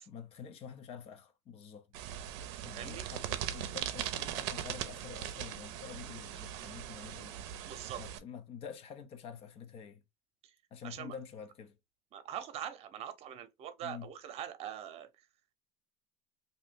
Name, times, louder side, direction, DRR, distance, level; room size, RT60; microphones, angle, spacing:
voice 1, 0.0-2.1 2.6-7.4 8.0-10.0 10.7-11.8 13.8-14.1, left 7 dB, 40° left, 0.7 m, -48 dB
sound 1, 1.9-8.2, right 11 dB, 70° right, 0.6 m, -40 dB
voice 2, 2.8-3.1 7.7-8.2 10.4-10.5 10.8-11.2 12.1-15.3, right 10 dB, 45° right, 0.8 m, -43 dB
2.8 x 2.6 x 3.6 m
supercardioid pair, 120°, 15 cm